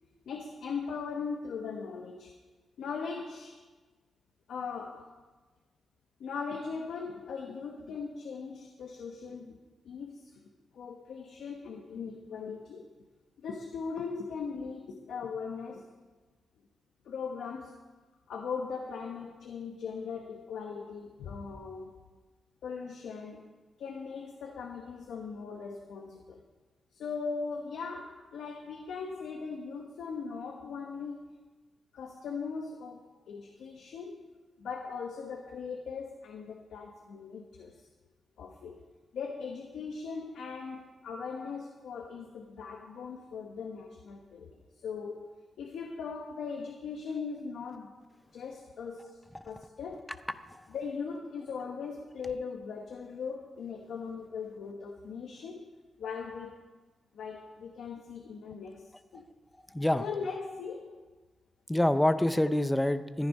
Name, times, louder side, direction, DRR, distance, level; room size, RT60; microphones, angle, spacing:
voice 1, 0.3-2.3 2.8-3.6 4.5-5.1 6.2-9.6 9.8-10.4 10.7-12.9 13.4-15.9 17.0-17.8 18.3-22.0 22.6-23.5 23.8-26.4 26.9-31.4 31.9-34.3 34.6-37.9 38.4-38.8 39.1-45.3 45.6-48.0 48.3-50.1 50.7-55.7 56.0-56.6 57.1-59.3 60.0-61.0, left 5 dB, 85° left, 2 dB, 1.1 m, -39 dB
voice 2, 59.7-60.1 61.7-63.3, left 1 dB, 5° left, 11 dB, 0.5 m, -26 dB
14.0 x 10.0 x 5.4 m, 1.3 s
wide cardioid pair, 165°, 0 cm